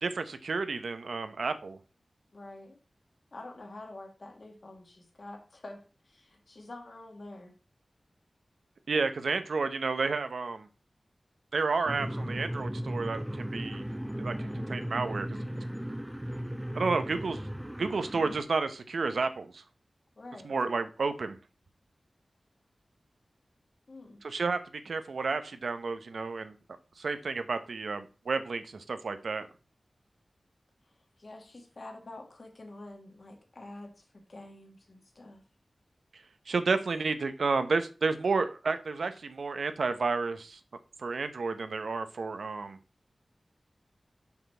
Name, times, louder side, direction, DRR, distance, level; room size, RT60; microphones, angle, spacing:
voice 1, 0.0-1.8 8.9-10.7 11.5-13.9 14.2-15.4 16.7-17.4 17.8-19.6 20.4-21.4 24.2-24.6 24.8-26.5 27.0-29.5 36.5-40.6 41.0-42.8, right 4 dB, 90° right, 9 dB, 0.8 m, -31 dB
voice 2, 2.3-2.8 3.3-7.5 20.2-20.5 23.9-24.2 31.2-35.4, left 2 dB, 55° left, 2 dB, 1.9 m, -47 dB
sound 1, 11.9-18.4, equal, 10° right, 0.7 m, -36 dB
6.0 x 5.8 x 4.4 m, 0.33 s
wide cardioid pair, 80°, 0 cm